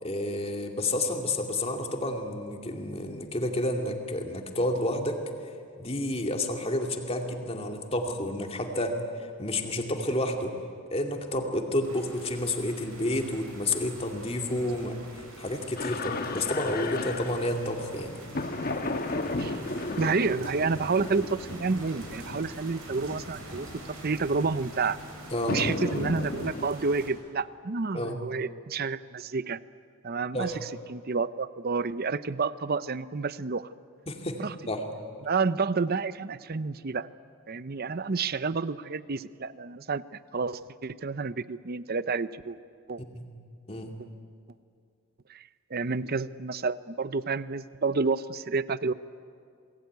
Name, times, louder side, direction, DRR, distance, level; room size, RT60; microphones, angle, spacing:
voice 1, 0.0-5.2 5.8-10.5 10.9-18.1 25.3-25.6 27.9-28.2 30.3-30.6 34.1-34.8 43.1-43.2 43.7-43.9, left 1 dB, 25° left, 3 dB, 2.4 m, -30 dB
sound 1, 11.8-27.1, right 1 dB, 70° right, 6.7 m, -46 dB
sound 2, 15.8-26.7, left 2 dB, 40° left, 1.3 m, -35 dB
voice 2, 20.0-25.0 25.5-29.6 30.0-33.7 34.4-34.5 35.2-37.1 37.5-42.6 42.9-43.0 45.3-45.4 45.7-48.9, right 4 dB, 45° right, 15 dB, 0.6 m, -30 dB
28.5 x 20.5 x 9.4 m, 2.3 s
head